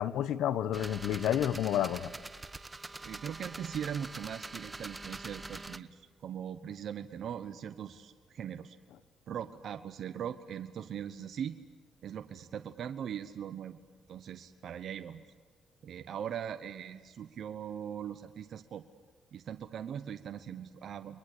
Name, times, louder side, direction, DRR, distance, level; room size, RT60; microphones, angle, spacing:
voice 1, 0.0-2.1, left 11 dB, 85° left, 1.1 m, -30 dB
sound 1, 0.7-5.8, right 2 dB, 20° right, 1.1 m, -44 dB
voice 2, 3.0-8.8 9.3-11.6 12.0-13.8 14.1-15.2 15.8-18.8 19.3-21.2, right 9 dB, 65° right, 1.0 m, -40 dB
30.0 x 23.0 x 8.4 m
cardioid pair, 90°, 0 cm